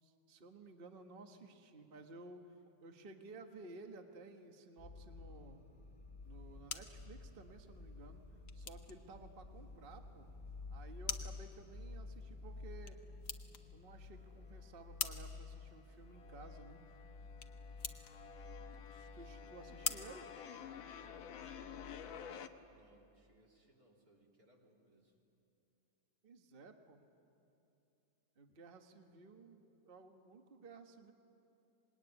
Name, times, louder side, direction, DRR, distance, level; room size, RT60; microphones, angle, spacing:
voice 1, 0.0-2.5 2.8-5.6 6.2-8.2 8.5-10.3 10.7-13.0 13.7-16.9 18.7-20.3 26.2-27.0 28.4-31.1, right 3 dB, 30° right, 5 dB, 1.4 m, -55 dB
sound 1, 4.8-22.7, left 3 dB, 20° left, 2.3 m, -52 dB
sound 2, 6.2-21.2, left 7 dB, 50° left, 1.2 m, -48 dB
sound 3, 14.2-15.0 15.3-22.5, left 8 dB, 80° left, 1.8 m, -52 dB
voice 2, 19.2-19.7 22.7-25.2, right 1 dB, 45° right, -1 dB, 3.7 m, -69 dB
25.5 x 20.5 x 9.8 m, 2.8 s
omnidirectional pair, 2.2 m